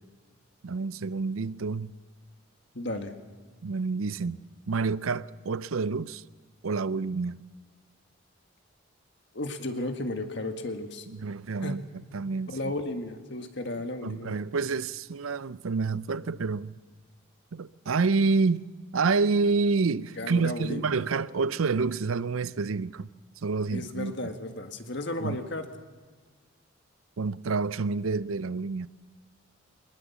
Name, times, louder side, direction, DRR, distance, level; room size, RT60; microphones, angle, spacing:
voice 1, 0.6-1.9 3.6-6.2 6.6-7.4 11.1-11.8 12.1-12.6 14.0-16.8 17.5-23.1 23.4-24.3 25.2-25.4 27.2-28.9, right 4 dB, 90° right, 0.6 m, -28 dB
voice 2, 2.7-3.1 9.3-11.1 11.6-11.8 12.5-14.4 20.2-20.9 23.7-25.7, left 2 dB, 55° left, 1.7 m, -34 dB
22.0 x 20.5 x 7.1 m
head